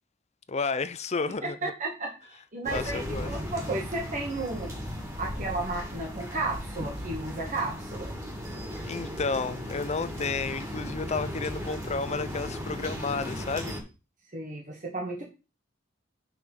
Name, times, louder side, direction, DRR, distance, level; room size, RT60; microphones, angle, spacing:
voice 1, 0.5-1.7 2.7-3.3 8.8-13.8, left 4 dB, 35° left, 0.6 m, -31 dB
voice 2, 1.4-4.7 5.2-8.1 14.3-15.2, right 2 dB, 40° right, 1.9 m, -33 dB
sound 1, 2.6-13.8, equal, 15° right, 2.5 m, -36 dB
6.8 x 6.0 x 4.7 m
head